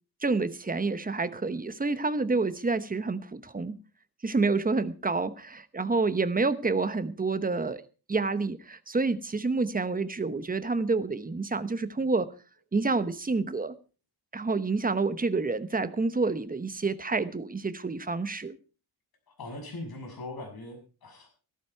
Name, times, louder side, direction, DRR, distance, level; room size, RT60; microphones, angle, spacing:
voice 1, 0.2-3.8 4.2-7.8 8.1-12.3 12.7-13.7 14.3-18.6, right 3 dB, 20° right, 12 dB, 1.0 m, -28 dB
voice 2, 19.4-21.3, left 2 dB, 65° left, 3 dB, 6.6 m, -40 dB
15.0 x 13.5 x 4.6 m, 0.36 s
wide cardioid pair, 145°, 39 cm